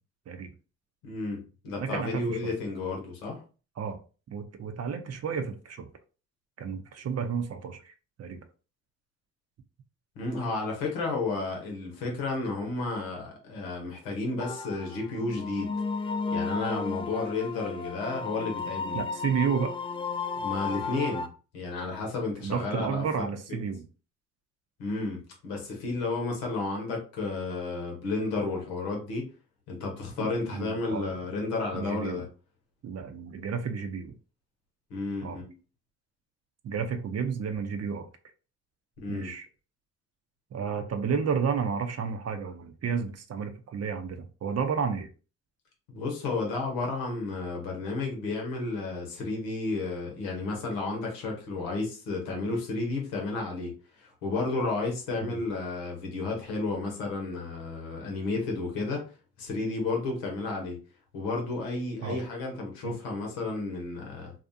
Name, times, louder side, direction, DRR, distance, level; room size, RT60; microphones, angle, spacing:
voice 1, 1.0-3.4 10.2-15.7 16.3-19.0 20.4-21.3 21.5-23.0 23.5-23.6 24.8-29.2 29.7-32.2 34.9-35.5 39.0-39.3 45.9-53.7 54.0-59.0 59.4-60.8 61.1-64.3, left 3 dB, 85° left, 1.0 m, -32 dB
voice 2, 1.8-2.6 3.8-4.0 4.3-5.9 6.6-7.9 8.2-8.4 18.9-19.7 22.4-23.8 30.2-31.1 31.7-32.2 32.8-34.1 35.2-35.4 36.6-38.1 39.1-39.5 40.5-45.1 55.2-55.4 62.0-62.2 62.8-63.0, right 6 dB, 45° right, 0.6 m, -31 dB
sound 1, 14.4-21.3, left 4 dB, 15° left, 0.3 m, -33 dB
2.4 x 2.4 x 2.6 m
hypercardioid pair, 50°, 37 cm